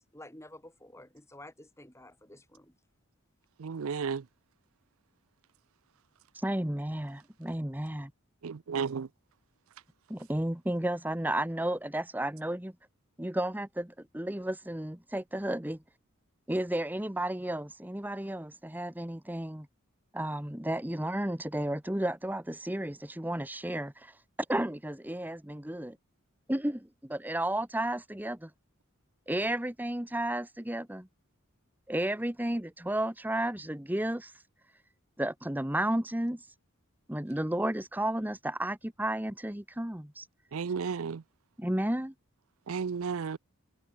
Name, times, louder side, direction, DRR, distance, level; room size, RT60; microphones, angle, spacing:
voice 1, 0.1-2.7, left 1 dB, 15° left, 7.5 m, -51 dB
voice 2, 3.6-4.2 8.4-9.1 40.5-41.2 42.7-43.4, right 6 dB, 75° right, 0.5 m, -33 dB
voice 3, 6.3-8.1 10.1-12.7 13.2-15.8 16.5-19.7 20.1-24.2 24.5-26.0 26.5-28.5 29.3-31.1 31.9-34.4 35.2-36.5 37.1-40.3 41.6-42.1, right 1 dB, 10° right, 1.0 m, -33 dB
head